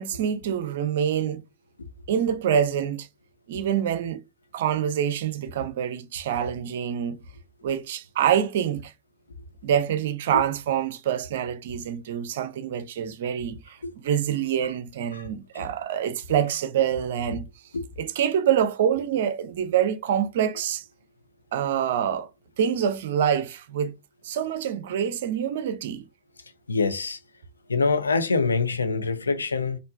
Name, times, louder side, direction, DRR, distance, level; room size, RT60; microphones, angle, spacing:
voice 1, 0.0-1.4 2.1-3.1 3.5-4.2 4.5-7.2 7.6-8.9 9.6-17.5 18.0-20.8 21.5-22.3 22.6-23.9 24.2-26.0, right 9 dB, 55° right, 0.5 m, -26 dB
voice 2, 26.7-27.2 27.7-29.8, left 4 dB, 75° left, 0.5 m, -24 dB
4.3 x 2.5 x 2.4 m
figure-of-eight pair, 90°, 0 cm